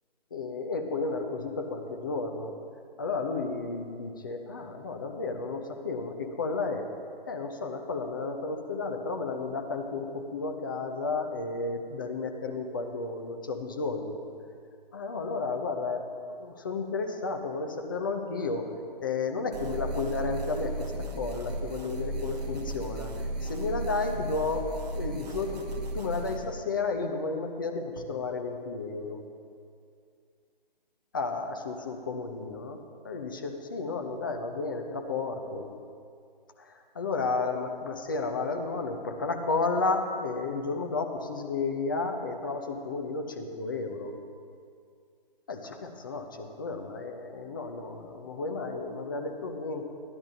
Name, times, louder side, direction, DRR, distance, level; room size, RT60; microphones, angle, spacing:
voice 1, 0.3-2.5 3.0-6.9 7.3-14.2 14.9-16.0 16.3-18.7 19.0-25.6 25.9-29.2 31.1-35.7 36.6-44.1 45.5-49.9, left 3 dB, 20° left, 4 dB, 0.5 m, -32 dB
sound 1, 19.5-26.4, right 2 dB, 45° right, 1.2 m, -35 dB
13.5 x 10.5 x 2.7 m, 2.3 s
figure-of-eight pair, 145°, 29 cm